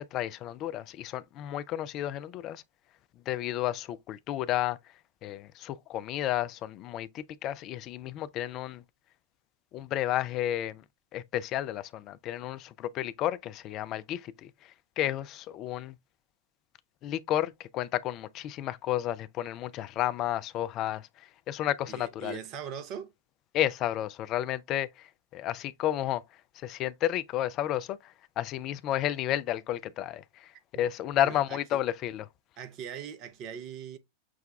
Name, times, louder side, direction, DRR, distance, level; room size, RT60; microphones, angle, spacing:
voice 1, 0.0-2.6 3.3-4.8 5.2-8.8 9.7-10.8 11.1-16.0 17.0-22.4 23.5-26.2 26.5-32.3, left 12 dB, 35° left, 0.4 m, -32 dB
voice 2, 21.9-23.1 31.1-31.8 32.6-34.0, right 8 dB, 40° right, 0.7 m, -40 dB
6.2 x 2.2 x 3.5 m
figure-of-eight pair, 90°, 0 cm